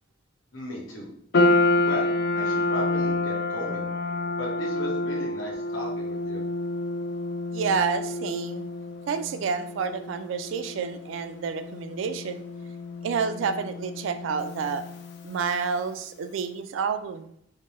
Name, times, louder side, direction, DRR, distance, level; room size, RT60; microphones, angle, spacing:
voice 1, 0.5-1.1 1.8-3.8 4.4-6.4, left 1 dB, 85° left, -2 dB, 1.0 m, -36 dB
sound 1, 1.3-15.8, left 2 dB, 60° left, 0.4 m, -29 dB
voice 2, 7.5-8.7 9.1-12.4 13.0-14.8 15.2-17.3, right 6 dB, 75° right, 11 dB, 0.3 m, -29 dB
4.2 x 2.0 x 3.1 m, 0.69 s
head